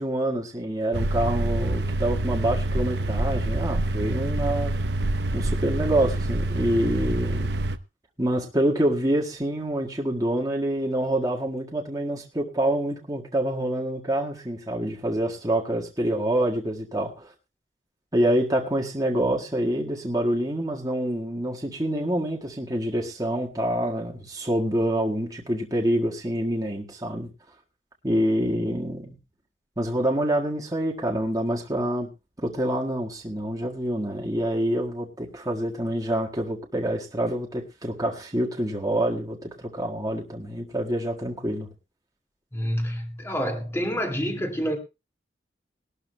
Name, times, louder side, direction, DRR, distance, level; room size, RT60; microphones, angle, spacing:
voice 1, 0.0-4.8 5.3-7.5 8.2-17.3 18.1-27.3 28.0-29.2 29.8-32.1 32.4-41.7, right 1 dB, 20° right, 1.7 m, -26 dB
sound 1, 0.9-7.8, right 1 dB, 65° right, 0.7 m, -26 dB
voice 2, 42.5-44.8, equal, 15° left, 2.2 m, -28 dB
21.0 x 12.0 x 2.2 m
head